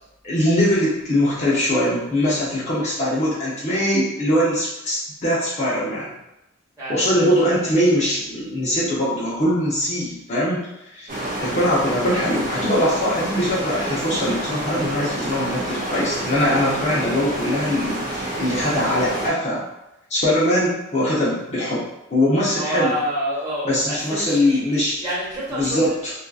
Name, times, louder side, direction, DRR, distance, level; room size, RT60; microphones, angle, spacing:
voice 1, 0.2-6.1 6.9-10.7 10.9-11.1 11.4-19.6 20.1-21.8 22.1-22.9 23.7-25.0 25.6-26.1, equal, 35° left, -8 dB, 0.6 m, -21 dB
voice 2, 6.8-7.3 11.4-11.7 22.5-24.6 25.0-25.8, right 1 dB, 15° right, -10 dB, 1.2 m, -28 dB
sound 1, 11.1-19.3, right 1 dB, 45° right, 0.7 m, -28 dB
2.7 x 2.3 x 2.3 m, 0.91 s
head